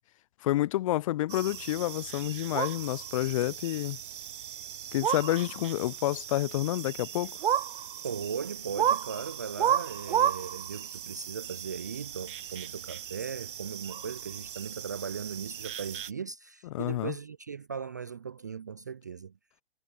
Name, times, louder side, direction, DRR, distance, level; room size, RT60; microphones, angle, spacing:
voice 1, 0.4-4.0 4.9-7.4 16.7-17.1, left 15 dB, 30° left, 0.8 m, -29 dB
sound 1, 1.3-16.1, right 10 dB, 55° right, 0.7 m, -34 dB
voice 2, 8.0-19.3, right 6 dB, 20° right, 0.3 m, -38 dB
figure-of-eight pair, 130°, 32 cm